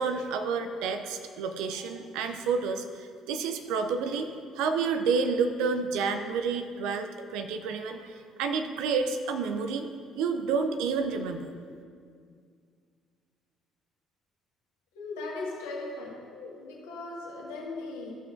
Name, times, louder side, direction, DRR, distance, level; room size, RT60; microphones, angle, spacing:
voice 1, 0.0-4.3 4.5-9.9 10.1-11.5, right 5 dB, 70° right, 8 dB, 0.5 m, -29 dB
voice 2, 14.9-18.1, left 2 dB, 80° left, -4 dB, 1.6 m, -38 dB
14.0 x 5.8 x 2.6 m, 2.2 s
hypercardioid pair, 50°, 0 cm